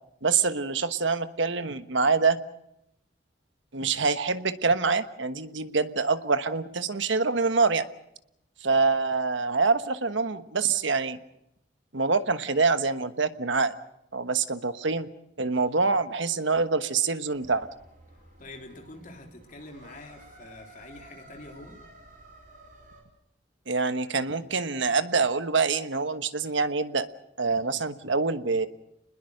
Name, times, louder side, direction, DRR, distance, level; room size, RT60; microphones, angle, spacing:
voice 1, 0.2-2.4 3.7-7.9 8.6-11.2 11.9-13.7 14.1-15.1 15.4-17.7 23.7-27.1 27.4-28.7, right 4 dB, 75° right, 11 dB, 1.3 m, -25 dB
sound 1, 17.3-23.0, right 1 dB, 40° right, 5.6 m, -52 dB
voice 2, 18.1-21.8, left 2 dB, 40° left, 3 dB, 3.5 m, -46 dB
28.0 x 21.0 x 6.6 m, 0.81 s
head